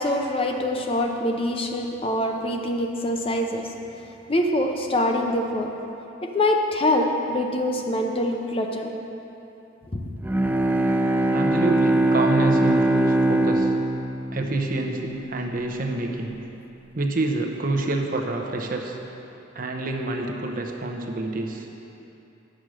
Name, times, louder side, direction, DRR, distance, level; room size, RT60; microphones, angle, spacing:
voice 1, 0.0-3.7 4.0-5.7 6.2-8.9 9.9-10.0, left 1 dB, 30° left, 3 dB, 0.6 m, -24 dB
Bowed string instrument, 10.2-15.3, right 1 dB, 10° right, 0.4 m, -22 dB
voice 2, 11.3-13.7 14.3-16.3 16.9-19.0 19.5-21.7, right 2 dB, 45° right, 2 dB, 0.8 m, -27 dB
8.9 x 6.4 x 6.3 m, 2.9 s
head